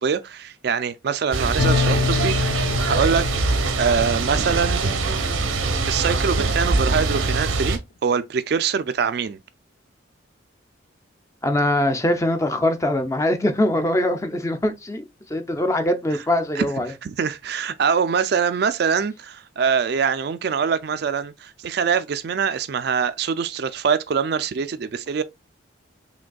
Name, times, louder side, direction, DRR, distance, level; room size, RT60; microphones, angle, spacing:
voice 1, 0.0-4.8 5.9-9.4 16.5-16.6 17.0-25.2, right 6 dB, 55° right, 0.3 m, -24 dB
sound 1, 1.3-7.8, right 3 dB, 85° right, 0.8 m, -23 dB
sound 2, 1.6-5.0, left 5 dB, 80° left, 0.5 m, -26 dB
voice 2, 11.4-16.9, left 1 dB, 15° left, 0.4 m, -22 dB
5.1 x 3.2 x 2.2 m
head